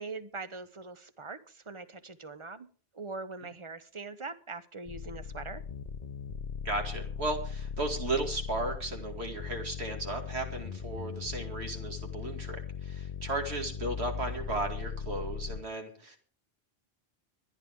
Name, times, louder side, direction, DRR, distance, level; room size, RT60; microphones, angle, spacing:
voice 1, 0.0-2.7 2.9-5.6, right 3 dB, 30° right, 12 dB, 0.9 m, -42 dB
sound 1, 4.9-15.6, left 7 dB, 45° left, 0.7 m, -39 dB
voice 2, 6.6-16.2, right 2 dB, 80° right, 3 dB, 2.6 m, -35 dB
24.0 x 10.0 x 3.5 m, 0.41 s
omnidirectional pair, 1.1 m